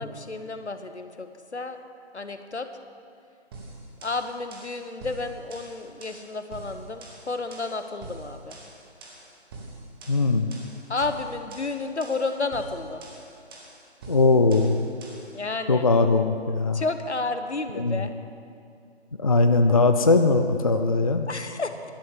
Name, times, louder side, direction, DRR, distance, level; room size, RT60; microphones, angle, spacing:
voice 1, 0.0-1.8 2.1-2.7 4.0-8.6 10.9-13.0 15.3-15.8 16.7-18.1 21.3-21.7, left 3 dB, 85° left, 9 dB, 1.1 m, -31 dB
sound 1, 3.5-15.3, right 2 dB, 20° right, 1.6 m, -44 dB
voice 2, 10.1-10.5 14.1-14.9 15.7-16.8 17.8-18.0 19.2-21.3, left 3 dB, 35° left, 8 dB, 0.4 m, -20 dB
11.5 x 8.4 x 7.2 m, 2.4 s
figure-of-eight pair, 150°, 33 cm